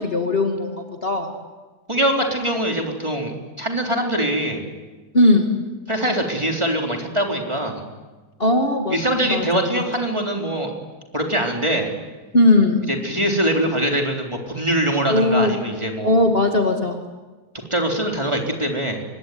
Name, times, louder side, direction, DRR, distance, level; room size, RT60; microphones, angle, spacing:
voice 1, 0.0-1.3 5.1-5.5 8.4-9.0 9.3-9.8 12.3-12.9 15.1-15.5 16.0-17.0, left 2 dB, 35° left, 4 dB, 2.3 m, -18 dB
voice 2, 1.9-4.6 5.9-7.8 8.9-10.7 11.1-11.9 13.0-16.2 17.7-19.0, right 1 dB, 15° right, 1 dB, 3.8 m, -23 dB
26.0 x 21.5 x 9.5 m, 1.2 s
omnidirectional pair, 1.7 m